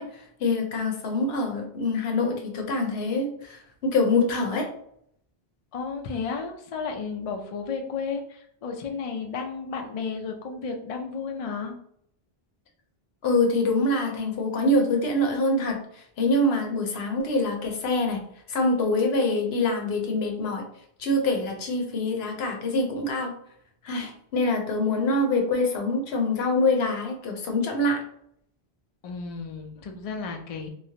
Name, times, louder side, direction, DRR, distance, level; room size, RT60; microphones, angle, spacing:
voice 1, 0.0-4.7 13.2-18.2 18.5-20.6 21.0-23.3 23.8-28.0, left 2 dB, 75° left, 3 dB, 0.9 m, -25 dB
voice 2, 5.7-11.7 29.0-30.7, left 5 dB, 55° left, 3 dB, 0.4 m, -33 dB
3.0 x 2.0 x 2.7 m, 0.68 s
omnidirectional pair, 1.1 m